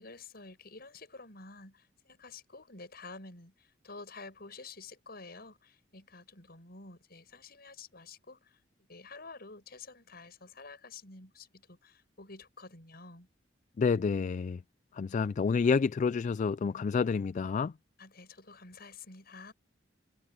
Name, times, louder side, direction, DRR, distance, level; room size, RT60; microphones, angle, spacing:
voice 1, 0.0-8.6 8.9-13.3 18.0-19.5, left 3 dB, 55° left, 7.5 m, -50 dB
voice 2, 13.8-14.6 15.0-17.7, left 5 dB, 40° left, 0.3 m, -29 dB
head